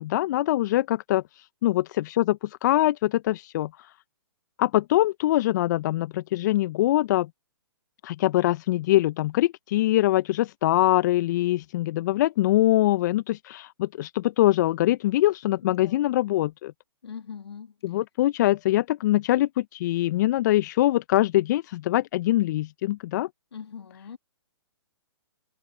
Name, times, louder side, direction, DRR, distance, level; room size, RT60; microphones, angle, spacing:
voice 1, 0.0-3.9 4.6-7.3 8.0-16.7 17.8-23.3, left 15 dB, 40° left, 0.8 m, -23 dB
voice 2, 15.6-16.0 17.0-17.8 23.5-24.2, left 7 dB, 70° left, 2.8 m, -41 dB
figure-of-eight pair, 130°, 14 cm